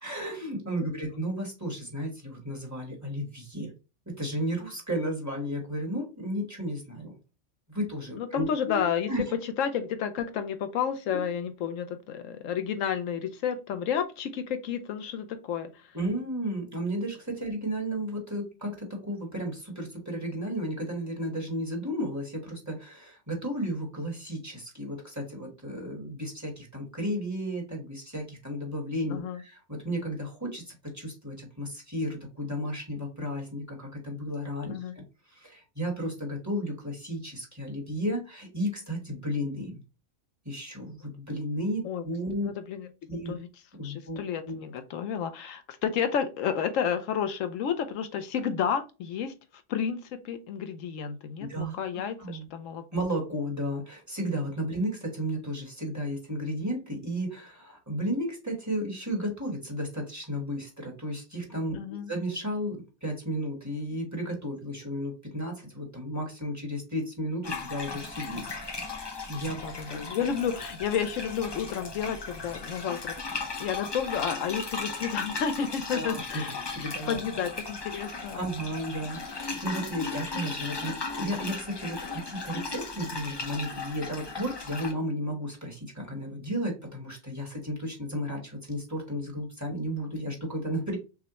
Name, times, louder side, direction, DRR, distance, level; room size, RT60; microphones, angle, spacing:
voice 1, 0.0-3.7 4.1-7.2 7.7-8.8 9.1-9.2 11.1-11.3 15.9-39.8 40.4-42.5 43.1-43.4 43.8-44.2 44.4-44.5 51.5-51.8 52.2-52.5 52.9-61.8 62.1-69.6 69.9-70.1 75.9-76.4 76.7-77.2 78.3-91.0, equal, 15° right, 0 dB, 1.1 m, -33 dB
voice 2, 8.2-9.1 9.4-15.9 29.1-29.4 34.7-34.9 41.8-42.0 42.4-42.9 43.3-43.4 43.8-49.3 49.7-52.9 61.7-62.1 69.5-76.5 77.1-78.4, left 7 dB, 85° left, 9 dB, 1.0 m, -31 dB
sound 1, 67.4-84.9, left 3 dB, 40° left, 0.4 m, -37 dB
6.0 x 2.1 x 2.9 m, 0.30 s
omnidirectional pair, 1.3 m